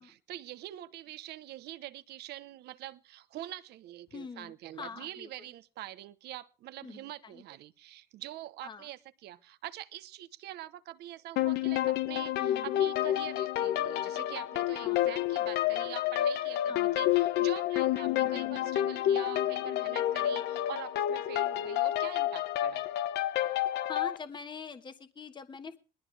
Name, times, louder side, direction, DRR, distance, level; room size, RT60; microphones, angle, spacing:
voice 1, 0.0-22.9, right 14 dB, 80° right, 1.0 m, -45 dB
voice 2, 4.1-5.5 6.8-7.4 8.6-8.9 12.4-12.8 14.8-15.1 16.7-17.0 18.1-18.7 23.9-25.8, left 5 dB, 25° left, 1.4 m, -44 dB
sound 1, 11.4-24.2, left 13 dB, 80° left, 0.9 m, -29 dB
21.0 x 13.5 x 3.4 m
cardioid pair, 110°, 17 cm